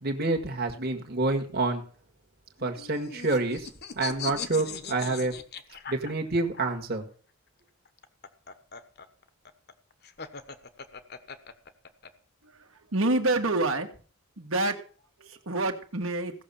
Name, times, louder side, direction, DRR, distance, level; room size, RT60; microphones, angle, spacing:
voice 1, 0.0-1.8 2.6-3.7 4.0-5.3 5.9-7.0, right 3 dB, 50° right, 3 dB, 1.7 m, -28 dB
sound 1, 2.6-6.6 7.9-12.1, left 6 dB, 50° left, 1.1 m, -40 dB
voice 2, 12.9-13.9 14.4-14.8 15.5-16.3, right 2 dB, 75° right, 4 dB, 1.8 m, -26 dB
16.5 x 6.5 x 7.1 m, 0.41 s
head